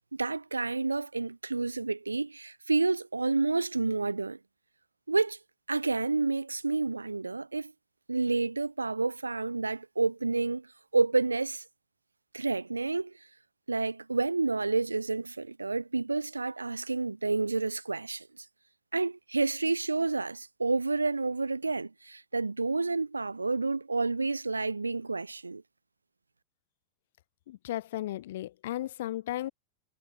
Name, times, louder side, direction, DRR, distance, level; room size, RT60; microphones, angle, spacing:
voice 1, 0.1-4.4 5.1-5.4 5.7-7.7 8.1-10.7 10.9-11.6 12.3-13.1 13.7-18.4 18.9-25.6, right 3 dB, 80° right, 1.8 m, -29 dB
voice 2, 27.5-29.5, left 14 dB, 55° left, 6.3 m, -35 dB
figure-of-eight pair, 90°, 0 cm